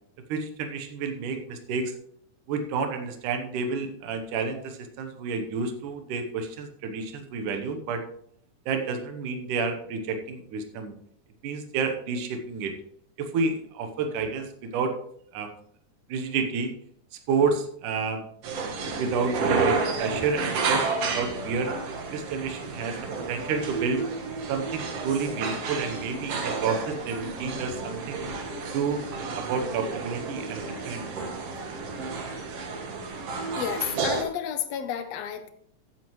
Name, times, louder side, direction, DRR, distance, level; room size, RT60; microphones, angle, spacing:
voice 1, 0.3-1.9 2.5-8.0 8.7-10.9 11.4-12.7 13.2-15.0 15.3-15.5 16.1-16.7 17.3-18.2 19.0-21.8 22.1-24.0 24.5-28.2 28.7-31.3, right 5 dB, 80° right, 6 dB, 2.6 m, -30 dB
sound 1, 18.4-34.2, right 4 dB, 60° right, 2.1 m, -31 dB
voice 2, 33.6-35.5, left 9 dB, 70° left, 9 dB, 1.7 m, -31 dB
15.0 x 7.6 x 3.1 m, 0.67 s
omnidirectional pair, 3.6 m